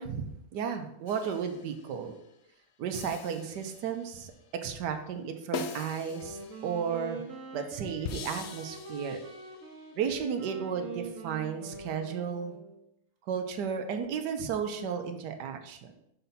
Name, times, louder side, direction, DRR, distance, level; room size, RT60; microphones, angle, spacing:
voice 1, 0.0-2.2 2.8-4.3 4.6-7.2 7.5-9.2 9.9-12.6 13.3-15.9, right 7 dB, 85° right, 6 dB, 1.4 m, -34 dB
sound 1, 1.1-2.0 2.9-4.3 5.5-7.1 8.0-9.9, left 5 dB, 65° left, 0.6 m, -42 dB
Wind instrument woodwind instrument, 6.1-12.8, right 3 dB, 55° right, 1.4 m, -44 dB
5.8 x 4.7 x 5.4 m, 0.79 s
omnidirectional pair, 1.8 m